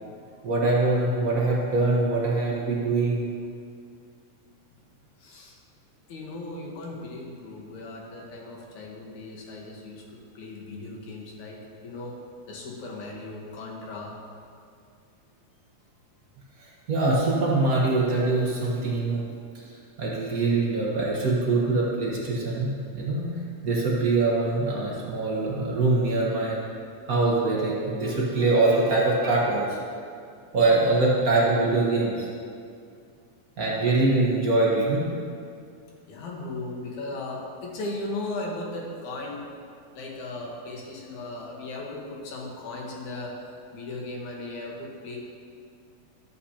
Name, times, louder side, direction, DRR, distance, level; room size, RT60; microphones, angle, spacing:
voice 1, 0.4-3.2 16.6-19.2 20.0-22.7 22.9-23.3 23.6-26.6 27.1-29.8 30.5-32.3 33.6-35.1, right 2 dB, 50° right, -4 dB, 1.0 m, -23 dB
voice 2, 5.2-5.6 6.1-10.0 10.3-12.2 12.5-14.1 36.1-39.4 39.9-45.2, left 2 dB, 75° left, -2 dB, 2.7 m, -37 dB
13.0 x 8.2 x 2.9 m, 2.3 s
omnidirectional pair, 3.4 m